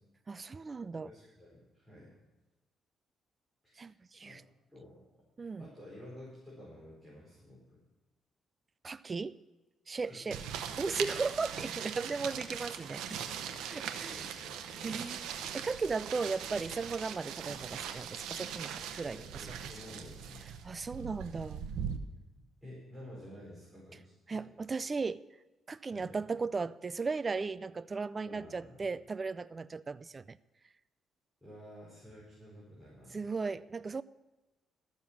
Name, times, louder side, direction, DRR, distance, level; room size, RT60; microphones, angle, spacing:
voice 1, 0.3-1.1 3.8-4.4 5.4-5.7 8.8-9.4 9.9-10.4 10.8-13.2 13.7-14.3 14.8-19.2 19.5-19.6 20.6-21.6 24.3-25.2 25.7-30.4 33.1-34.0, right 4 dB, 30° right, 0.4 m, -36 dB
voice 2, 0.9-2.1 3.6-3.9 4.2-4.4 4.7-5.0 5.6-7.8 10.0-10.8 13.5-13.7 14.0-14.9 19.1-20.5 22.6-24.5 25.9-26.1 28.2-28.9 31.4-33.2, left 1 dB, ahead, 4.8 m, -51 dB
sound 1, 10.3-22.0, right 8 dB, 85° right, 0.9 m, -40 dB
13.5 x 7.4 x 6.1 m
cardioid pair, 90°, 0 cm